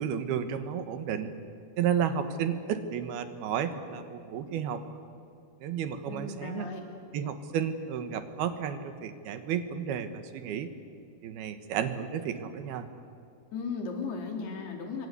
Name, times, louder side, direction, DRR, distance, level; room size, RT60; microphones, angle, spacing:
voice 1, 0.0-1.3 1.8-4.8 5.6-6.7 7.1-10.7 11.2-12.9, right 8 dB, 75° right, 9 dB, 3.2 m, -32 dB
voice 2, 6.1-6.8 13.5-15.1, left 4 dB, 75° left, 3 dB, 5.3 m, -36 dB
27.5 x 23.0 x 8.2 m, 2.5 s
omnidirectional pair, 4.7 m